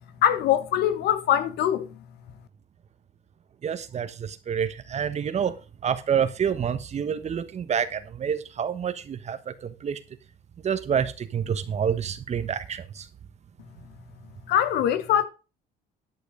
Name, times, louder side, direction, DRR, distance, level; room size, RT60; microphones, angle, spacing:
voice 1, 0.2-1.9 14.5-15.3, left 10 dB, 75° left, 1.2 m, -22 dB
voice 2, 3.6-5.6 5.8-10.0 10.6-13.1, right 8 dB, 40° right, 1.3 m, -28 dB
11.0 x 6.5 x 5.0 m
cardioid pair, 110°, 17 cm